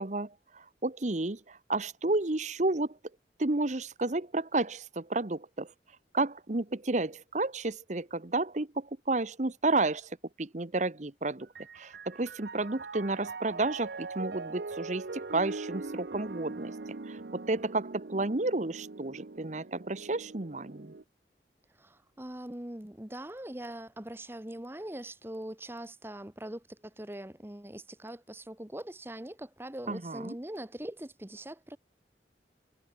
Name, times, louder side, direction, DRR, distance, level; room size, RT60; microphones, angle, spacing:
voice 1, 0.0-3.0 3.4-5.7 6.1-11.5 11.7-16.7 17.1-20.9 29.9-30.3, right 2 dB, 40° right, 1.0 m, -31 dB
Piano, 11.4-21.0, right 3 dB, 65° right, 0.8 m, -42 dB
voice 2, 21.8-31.8, right 1 dB, 15° right, 1.0 m, -42 dB
head